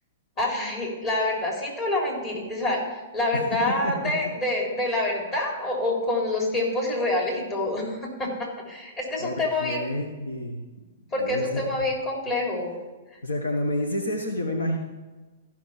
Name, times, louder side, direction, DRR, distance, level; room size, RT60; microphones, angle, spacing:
voice 1, 0.4-9.8 11.1-12.7, left 2 dB, 30° left, -2 dB, 4.0 m, -27 dB
voice 2, 3.3-3.9 9.2-10.6 11.2-11.7 13.2-14.8, left 1 dB, 80° left, 3 dB, 1.2 m, -29 dB
14.5 x 6.2 x 5.8 m, 1.2 s
figure-of-eight pair, 110°, 0 cm